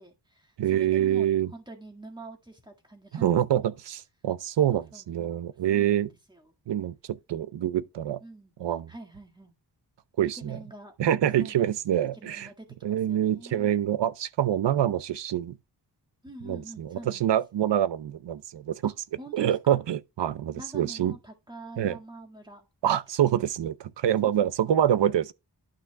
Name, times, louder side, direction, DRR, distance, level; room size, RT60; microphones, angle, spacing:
voice 1, 0.0-3.3 3.6-3.8 4.7-6.5 8.2-8.5 8.9-9.5 10.3-10.9 11.4-13.7 16.2-17.3 18.8-19.8 20.5-22.7 24.2-24.8, right 1 dB, 10° right, 1.7 m, -46 dB
voice 2, 0.6-1.5 3.2-6.1 6.7-8.2 8.6-8.9 10.2-10.6 11.0-12.5 12.8-15.6 16.5-18.9 19.3-21.2 21.8-22.0 22.8-25.3, right 10 dB, 80° right, 0.7 m, -26 dB
11.5 x 5.8 x 2.2 m
wide cardioid pair, 140°, 41 cm